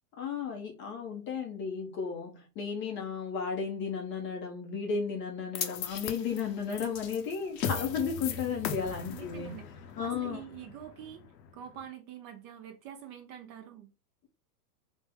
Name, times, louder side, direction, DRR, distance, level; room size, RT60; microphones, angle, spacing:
voice 1, 0.1-9.6 10.0-10.4, left 6 dB, 25° left, 0.5 m, -34 dB
sound 1, 5.5-11.8, left 7 dB, 85° left, 0.7 m, -38 dB
voice 2, 9.1-11.2 11.5-13.9, right 10 dB, 35° right, 0.6 m, -46 dB
3.4 x 2.1 x 3.3 m
hypercardioid pair, 115°, 49 cm